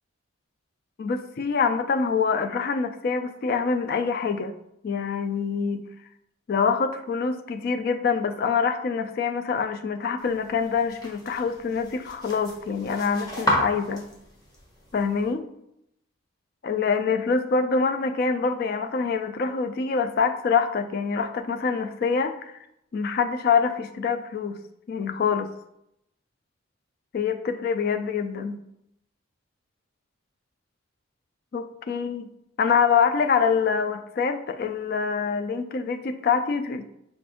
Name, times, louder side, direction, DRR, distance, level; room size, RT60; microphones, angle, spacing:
voice 1, 1.0-4.5 4.8-5.8 6.5-14.0 14.9-15.5 16.6-22.6 22.9-24.6 24.9-25.5 27.1-28.6 31.5-32.3 32.6-36.9, left 5 dB, 50° left, 8 dB, 0.3 m, -25 dB
sound 1, 10.2-15.3, equal, 20° left, 0.9 m, -33 dB
5.2 x 2.5 x 3.5 m, 0.80 s
head